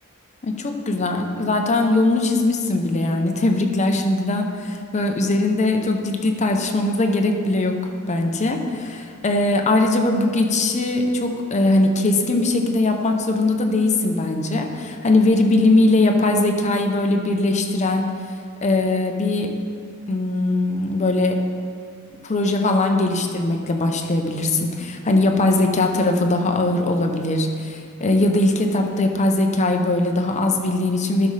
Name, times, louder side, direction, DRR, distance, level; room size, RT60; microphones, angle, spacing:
voice 1, 0.4-7.7 8.1-18.0 18.6-19.5 20.1-21.4 22.2-31.3, left 2 dB, 35° left, 3 dB, 0.6 m, -20 dB
11.5 x 5.5 x 3.3 m, 2.2 s
head